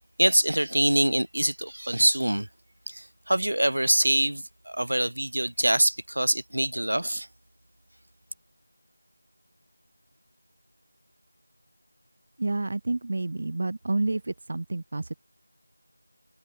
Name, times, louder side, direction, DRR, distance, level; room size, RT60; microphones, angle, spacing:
voice 1, 0.2-2.5 2.9-7.3, right 1 dB, 75° right, 2.4 m, -24 dB
voice 2, 12.4-15.1, right 2 dB, 25° right, 0.8 m, -29 dB
figure-of-eight pair, 180°, 0 cm